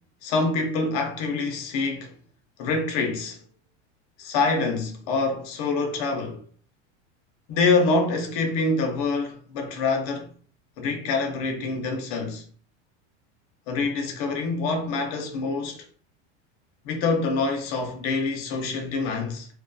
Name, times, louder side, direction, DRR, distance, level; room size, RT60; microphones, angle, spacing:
voice 1, 0.2-2.1 2.6-3.4 4.2-6.4 7.5-10.3 10.8-12.4 13.7-15.9 16.8-19.5, left 3 dB, 35° left, 0.4 m, -26 dB
2.2 x 2.2 x 2.5 m
supercardioid pair, 170°, 36 cm